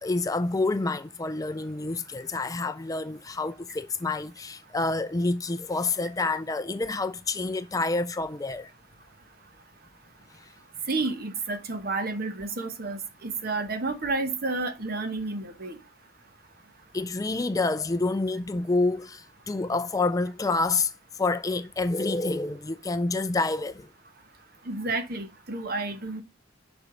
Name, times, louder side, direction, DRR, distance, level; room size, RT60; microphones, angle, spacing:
voice 1, 0.0-8.7 10.3-10.4 16.9-23.9, left 3 dB, 15° left, 0.4 m, -28 dB
voice 2, 10.9-15.8 24.7-26.2, right 3 dB, 50° right, 1.1 m, -30 dB
7.2 x 5.5 x 3.9 m
head